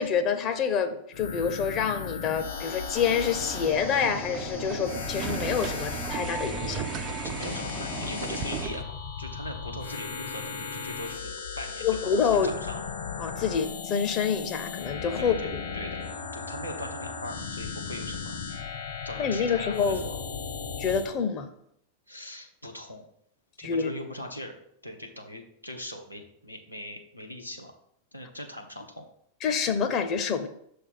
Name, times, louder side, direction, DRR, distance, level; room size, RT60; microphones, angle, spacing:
voice 1, 0.0-6.9 11.8-12.5 13.2-15.6 19.2-20.0 20.8-21.5 23.6-23.9 29.4-30.5, left 6 dB, 35° left, 9 dB, 0.6 m, -27 dB
sound 1, 1.1-21.1, left 6 dB, 60° left, 1.1 m, -36 dB
sound 2, 2.9-8.8, right 9 dB, 35° right, 0.4 m, -36 dB
voice 2, 7.2-12.1 12.4-12.8 15.2-15.5 15.7-16.0 16.3-18.4 19.0-20.2 22.1-23.0 23.6-24.6 24.8-27.7 28.1-29.0, left 1 dB, 90° left, 1 dB, 0.9 m, -40 dB
6.5 x 3.4 x 5.7 m, 0.71 s
figure-of-eight pair, 90°, 0 cm